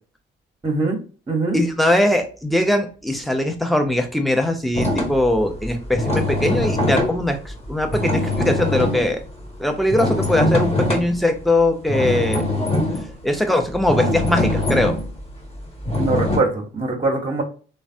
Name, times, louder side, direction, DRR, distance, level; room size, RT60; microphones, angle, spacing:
voice 1, 0.6-1.0 1.3-1.6 16.0-17.4, right 3 dB, 25° right, 2 dB, 0.9 m, -22 dB
voice 2, 1.5-9.2 9.6-12.7 13.2-14.9, left 1 dB, ahead, 5 dB, 0.6 m, -21 dB
sound 1, 4.7-11.4 11.9-16.4, left 1 dB, 30° left, 1.2 m, -23 dB
3.2 x 2.1 x 2.5 m, 0.37 s
cardioid pair, 90°, 20 cm